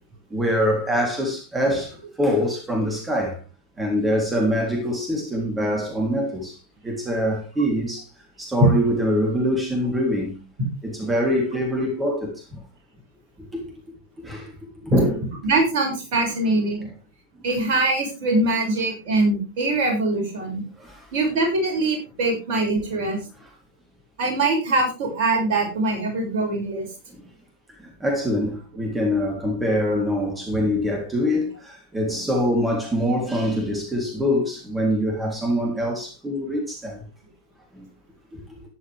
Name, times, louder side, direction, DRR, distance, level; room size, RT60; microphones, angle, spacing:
voice 1, 0.3-3.4 3.8-6.6 6.8-8.1 8.4-10.4 10.8-12.6 14.2-14.5 14.9-15.2 20.8-21.1 28.0-37.0 37.7-37.8 38.3-38.4, equal, 10° right, 3.6 m, -24 dB
voice 2, 15.4-16.9 17.4-20.6 21.1-23.2 24.2-26.9, right 2 dB, 50° right, 6.7 m, -23 dB
13.5 x 11.0 x 3.6 m
figure-of-eight pair, 90°, 0 cm